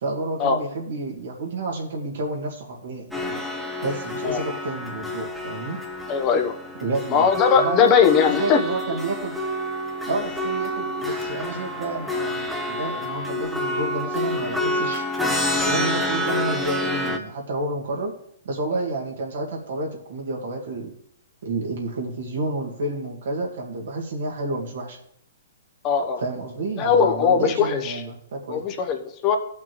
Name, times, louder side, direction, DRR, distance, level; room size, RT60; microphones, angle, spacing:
voice 1, 0.0-3.4 3.8-5.8 6.8-8.1 8.4-9.3 10.0-15.4 15.6-18.1 18.5-20.9 21.4-25.0 26.2-28.6, right 2 dB, 70° right, 0 dB, 1.9 m, -30 dB
sound 1, 3.1-17.2, left 1 dB, ahead, 1.0 m, -28 dB
voice 2, 6.1-6.5 7.1-8.6 25.8-26.2 26.8-28.0 28.5-29.4, left 7 dB, 35° left, 5 dB, 0.9 m, -20 dB
15.0 x 5.9 x 3.1 m, 0.74 s
hypercardioid pair, 130°, 0 cm